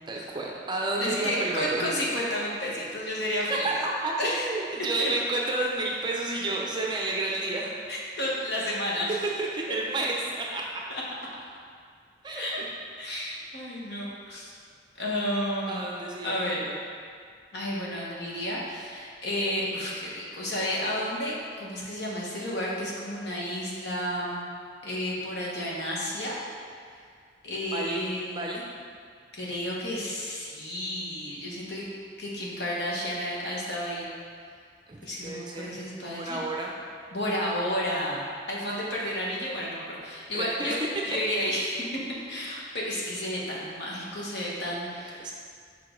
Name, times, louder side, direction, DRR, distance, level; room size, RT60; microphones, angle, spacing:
voice 1, 0.1-1.9 3.5-7.8 9.4-10.6 12.2-12.4 13.1-13.2 15.7-16.8 27.7-28.1 28.3-28.7 34.9-35.7 36.0-36.7 38.7-38.8 40.3-40.7 45.2-45.3, right 2 dB, 25° right, -2 dB, 0.6 m, -31 dB
voice 2, 1.0-3.7 4.2-4.5 5.0-5.1 7.9-9.1 9.7-9.8 10.9-11.0 12.3-12.6 13.0-14.5 14.9-15.8 16.2-16.6 17.5-24.4 24.8-26.4 27.4-28.4 29.3-31.9 32.2-34.1 35.0-36.4 37.1-40.8 41.0-42.0 42.3-45.3, equal, 65° left, -5 dB, 1.3 m, -31 dB
5.6 x 5.1 x 3.8 m, 2.1 s
head